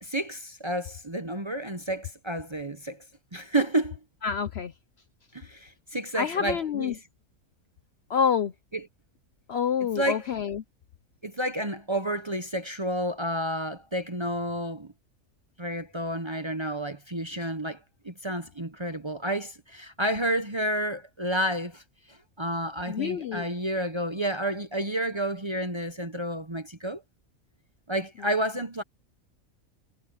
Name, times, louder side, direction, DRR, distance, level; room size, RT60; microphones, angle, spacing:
voice 1, 0.0-3.0 3.3-4.0 5.3-7.0 8.7-8.9 9.8-10.2 11.2-14.9 15.6-17.8 18.0-21.8 22.1-27.0 27.9-28.8, right 1 dB, 25° right, 0.8 m, -30 dB
voice 2, 4.2-4.7 6.2-6.9 8.1-8.5 9.5-10.6 22.9-23.4, left 7 dB, 60° left, 0.7 m, -27 dB
omnidirectional pair, 1.5 m